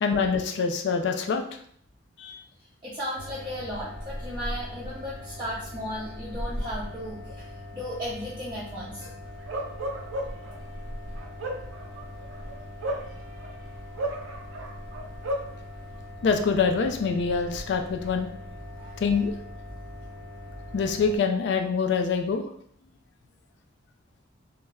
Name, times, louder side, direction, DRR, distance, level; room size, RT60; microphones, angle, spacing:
voice 1, 0.0-1.4 2.2-2.4 16.2-18.3 19.0-19.3 20.7-22.5, left 5 dB, 60° left, 5 dB, 0.3 m, -25 dB
voice 2, 2.6-9.1 18.7-19.0 19.7-19.8, equal, 25° right, -8 dB, 0.4 m, -36 dB
sound 1, 3.2-21.2, left 1 dB, 80° left, 0.9 m, -40 dB
Bark, 9.5-10.5 11.2-13.5 14.0-15.5, right 1 dB, 90° right, 0.4 m, -33 dB
2.2 x 2.0 x 3.4 m, 0.64 s
head